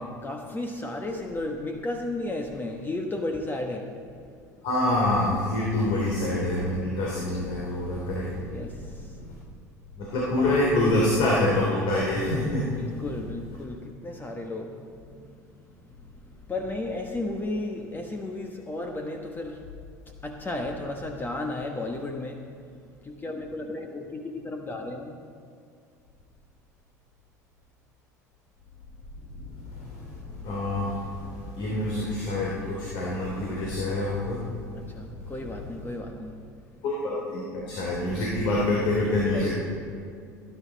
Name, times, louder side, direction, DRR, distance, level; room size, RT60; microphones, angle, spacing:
voice 1, 0.0-4.0 5.8-5.9 8.5-9.1 10.4-11.0 12.8-15.4 16.0-19.6 20.2-22.5 23.0-25.2 34.7-36.5 39.3-39.5, left 2 dB, 20° left, 3 dB, 1.3 m, -34 dB
voice 2, 4.6-8.4 10.0-12.8 29.7-29.8 30.4-31.1 31.6-34.4 36.8-39.5, left 1 dB, 60° left, -4 dB, 3.1 m, -26 dB
18.0 x 10.5 x 4.1 m, 2.3 s
hypercardioid pair, 70°, 9 cm